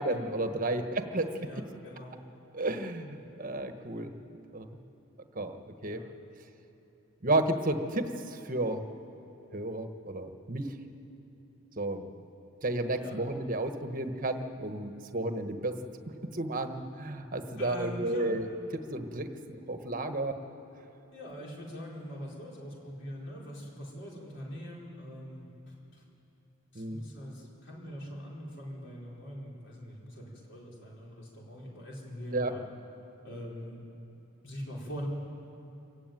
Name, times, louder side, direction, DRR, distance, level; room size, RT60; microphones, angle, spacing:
voice 1, 0.0-1.6 2.5-4.1 4.5-4.7 5.3-5.6 5.8-6.0 7.2-8.8 9.5-10.7 11.8-12.1 12.6-15.8 16.2-19.3 19.7-20.3 26.7-27.0 32.3-32.5, right 2 dB, 40° right, 7 dB, 1.3 m, -32 dB
voice 2, 1.4-2.2 5.9-6.1 13.0-13.2 17.6-18.3 21.1-26.0 26.7-32.6 33.2-33.8 34.4-35.1, equal, 55° left, -3 dB, 4.8 m, -43 dB
26.0 x 15.0 x 9.3 m, 3.0 s
head